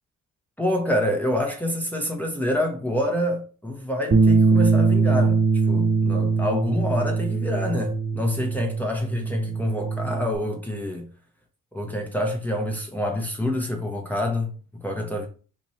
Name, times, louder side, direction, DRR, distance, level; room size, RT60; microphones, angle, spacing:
voice 1, 0.6-11.1 11.7-15.3, left 1 dB, 5° left, 0.7 m, -27 dB
Bass guitar, 4.1-10.4, right 4 dB, 25° right, 0.4 m, -22 dB
3.0 x 2.6 x 4.1 m
cardioid pair, 90°, 30 cm